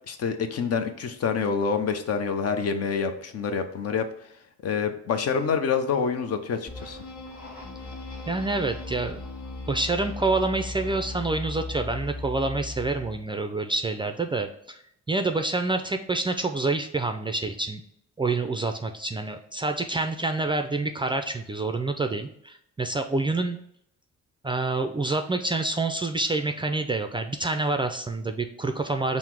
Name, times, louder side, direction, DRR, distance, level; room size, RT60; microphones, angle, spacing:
voice 1, 0.1-4.0 4.6-7.0, left 6 dB, 55° left, 8 dB, 0.6 m, -27 dB
sound 1, 6.7-13.2, left 2 dB, 30° left, 1.6 m, -37 dB
voice 2, 8.3-9.2 9.7-14.8 15.1-17.8 18.2-23.6 24.4-29.2, right 3 dB, 15° right, 6 dB, 0.3 m, -27 dB
5.6 x 2.1 x 4.6 m, 0.72 s
cardioid pair, 90°, 30 cm